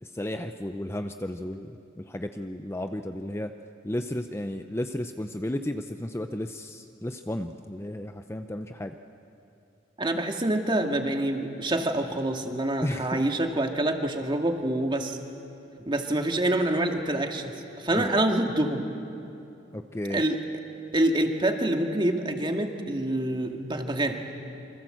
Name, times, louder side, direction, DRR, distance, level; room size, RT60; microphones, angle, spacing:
voice 1, 0.0-3.5 3.8-9.0 12.8-13.2 18.0-18.2 19.7-20.2, left 1 dB, 15° left, 7 dB, 0.6 m, -33 dB
voice 2, 10.0-15.2 15.9-18.8 20.1-20.6 20.9-24.2, right 1 dB, 25° right, 4 dB, 2.0 m, -26 dB
27.5 x 25.5 x 7.8 m, 2.7 s
head